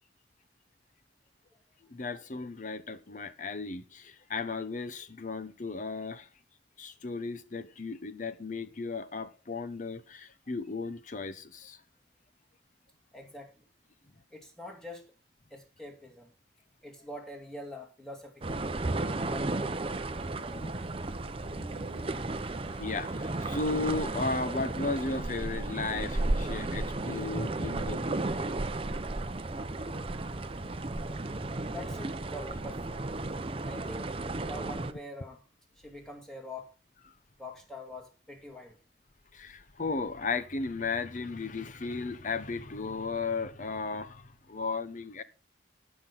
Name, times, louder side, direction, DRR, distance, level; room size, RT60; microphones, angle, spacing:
voice 1, 1.9-6.3 6.8-11.8 20.6-20.7 21.4-28.5 30.6-30.7 39.3-45.2, left 3 dB, 45° left, 0.8 m, -35 dB
voice 2, 13.1-13.6 14.3-15.1 15.5-16.3 16.8-18.7 19.1-20.0 20.4-20.8 27.0-27.1 30.9-31.4 31.6-33.1 33.6-35.4 35.8-36.7 37.4-38.8, left 1 dB, 5° left, 2.3 m, -45 dB
sound 1, 18.4-34.9, right 2 dB, 30° right, 0.7 m, -34 dB
16.5 x 6.0 x 4.0 m
head